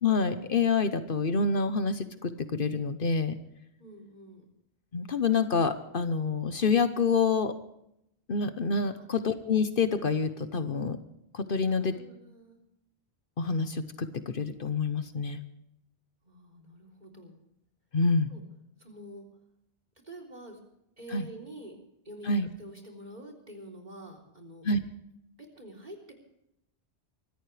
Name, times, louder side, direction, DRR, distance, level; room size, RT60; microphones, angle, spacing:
voice 1, 0.0-3.4 4.9-7.5 8.3-11.0 11.3-11.9 13.4-15.4 17.9-18.3 21.1-21.2 22.3-22.5 24.6-24.8, left 4 dB, 55° left, 10 dB, 1.1 m, -27 dB
voice 2, 3.8-4.5 9.0-9.1 11.6-12.6 16.2-17.4 18.3-18.4 18.8-19.3 20.0-20.6 21.0-21.7 22.0-22.3 22.6-24.6 25.6-26.1, right 1 dB, 45° right, 3 dB, 3.7 m, -47 dB
24.5 x 14.0 x 3.3 m, 0.78 s
omnidirectional pair, 1.1 m